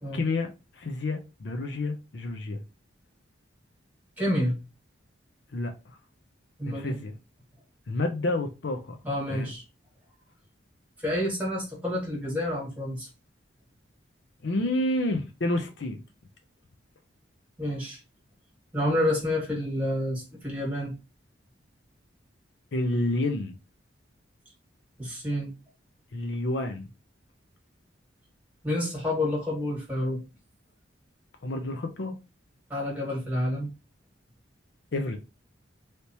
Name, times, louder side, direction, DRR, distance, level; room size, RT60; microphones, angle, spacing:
voice 1, 0.1-2.6 5.5-6.0 6.6-7.2 7.9-9.0 9.3-9.5 14.4-16.0 22.7-23.6 26.1-26.9 31.4-32.1 34.9-35.2, left 2 dB, 60° left, 0.5 m, -29 dB
voice 2, 4.2-4.5 6.6-7.0 9.0-9.6 11.0-13.1 17.6-18.0 18.7-20.9 25.0-25.5 28.6-30.2 32.7-33.7, left 1 dB, 10° right, 1.6 m, -29 dB
3.3 x 2.8 x 2.8 m
head